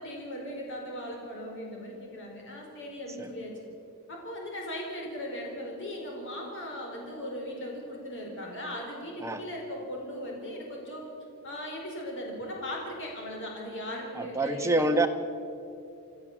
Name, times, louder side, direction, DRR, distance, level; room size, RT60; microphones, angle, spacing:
voice 1, 0.0-3.5 4.1-11.0 11.4-14.8, equal, 60° left, -1 dB, 4.6 m, -38 dB
voice 2, 14.2-15.1, right 2 dB, 15° right, 5 dB, 1.2 m, -26 dB
27.5 x 13.5 x 7.4 m, 2.6 s
head